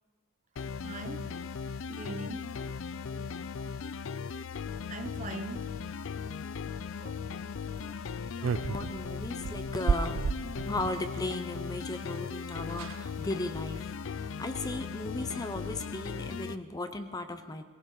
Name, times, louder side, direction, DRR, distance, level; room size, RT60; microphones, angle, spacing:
sound 1, 0.6-16.6, left 5 dB, 65° left, 0.4 m, -38 dB
voice 1, 0.8-1.4 1.9-2.6 4.9-5.8 7.0-7.2, right 2 dB, 35° right, 0.8 m, -41 dB
voice 2, 3.1-4.0 7.7-17.6, left 2 dB, 20° left, 0.6 m, -37 dB
sound 2, 8.4-11.0 12.2-12.3 12.4-12.5 12.7-13.1 13.5-13.8, right 5 dB, 60° right, 0.4 m, -32 dB
19.0 x 18.5 x 3.9 m
head